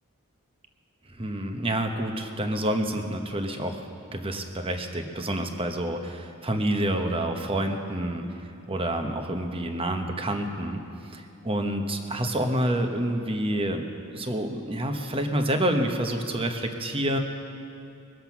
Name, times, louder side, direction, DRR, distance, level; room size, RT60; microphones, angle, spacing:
voice 1, 1.1-8.2 8.7-10.8 11.1-13.9 14.1-17.2, right 1 dB, 25° right, 5 dB, 1.0 m, -28 dB
21.5 x 7.8 x 5.9 m, 2.7 s
head